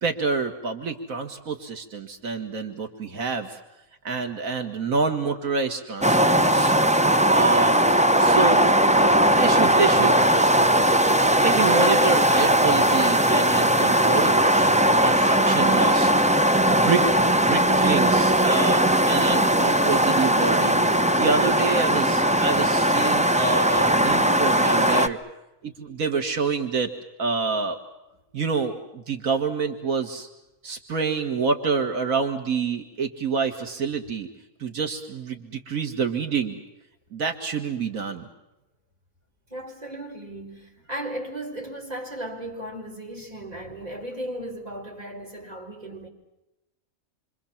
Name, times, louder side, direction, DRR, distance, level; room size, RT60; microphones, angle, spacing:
voice 1, 0.0-3.6 4.0-6.7 7.3-7.8 8.2-8.7 9.3-10.2 11.4-16.1 16.7-20.8 21.1-25.2 25.6-26.9 27.2-27.8 28.3-30.3 30.6-34.3 34.6-36.6 37.1-38.3, right 5 dB, 80° right, 2.1 m, -27 dB
sound 1, 6.0-25.1, right 1 dB, 5° right, 0.7 m, -19 dB
voice 2, 39.5-46.1, right 1 dB, 30° right, 4.6 m, -36 dB
27.0 x 25.5 x 7.3 m
omnidirectional pair, 1.4 m